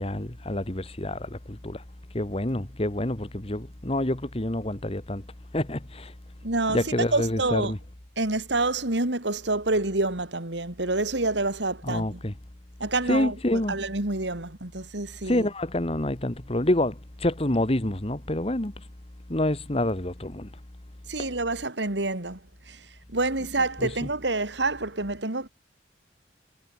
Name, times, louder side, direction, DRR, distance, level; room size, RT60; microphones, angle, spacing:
voice 1, 0.0-1.8 2.1-5.3 5.5-6.1 6.7-7.8 11.8-12.3 13.1-13.8 15.3-18.8 19.3-20.5 21.2-21.3 23.8-24.1, left 1 dB, 35° left, 1.7 m, -27 dB
voice 2, 6.4-7.7 8.2-12.2 12.8-15.5 21.1-22.4 22.7-25.5, right 2 dB, 80° right, 3.0 m, -28 dB
head